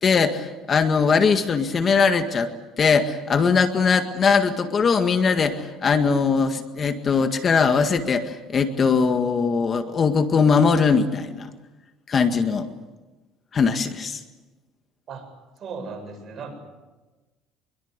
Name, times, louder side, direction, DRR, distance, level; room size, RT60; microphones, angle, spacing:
voice 1, 0.0-2.5 2.8-11.5 12.1-12.7 13.5-14.2, left 5 dB, 35° left, 7 dB, 1.8 m, -20 dB
voice 2, 15.6-16.5, right 4 dB, 45° right, 6 dB, 7.7 m, -36 dB
26.0 x 22.5 x 8.2 m, 1.2 s
cardioid pair, 115°, 0 cm